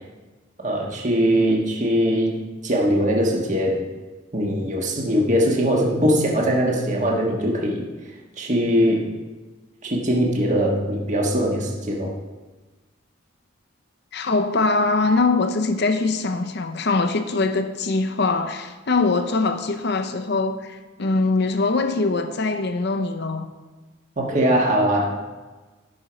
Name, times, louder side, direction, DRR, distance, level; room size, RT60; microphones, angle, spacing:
voice 1, 0.6-2.3 2.6-3.9 4.3-7.9 8.4-9.0 9.8-12.1 24.2-25.1, equal, 40° right, 1.5 m, -21 dB
voice 2, 14.1-23.5, left 3 dB, 55° left, 0.7 m, -22 dB
12.0 x 6.1 x 5.1 m
head